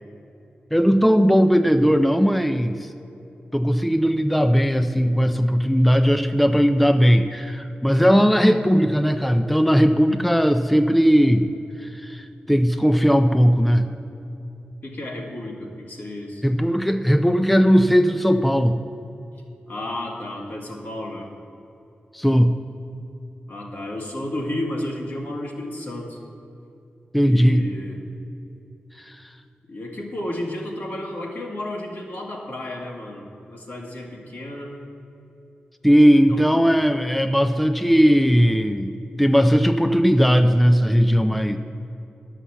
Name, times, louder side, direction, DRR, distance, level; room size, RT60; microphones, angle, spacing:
voice 1, 0.7-2.9 3.5-11.5 11.8-13.9 16.4-18.8 22.1-22.5 27.1-27.7 29.1-29.2 35.8-41.6, equal, ahead, 7 dB, 0.4 m, -18 dB
voice 2, 14.8-16.4 19.7-21.3 23.5-26.2 27.2-28.0 29.7-34.8 36.1-36.6, left 1 dB, 65° left, -2 dB, 2.0 m, -32 dB
11.0 x 5.7 x 7.2 m, 2.8 s
wide cardioid pair, 80°, 4 cm